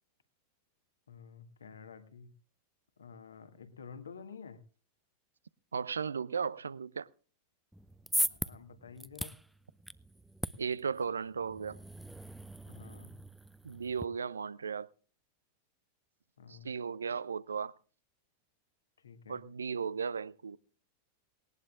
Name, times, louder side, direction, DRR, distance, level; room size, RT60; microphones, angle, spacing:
voice 1, 1.1-2.3 3.0-4.6 8.3-9.4 12.7-13.2 16.4-16.8 19.0-19.4, left 6 dB, 70° left, 1.8 m, -50 dB
voice 2, 5.7-7.1 10.6-11.8 13.6-14.9 16.5-17.7 19.3-20.6, right 6 dB, 70° right, 0.6 m, -36 dB
sound 1, 7.7-14.0, right 1 dB, 5° right, 0.6 m, -39 dB
19.5 x 19.0 x 2.5 m
figure-of-eight pair, 90°, 0 cm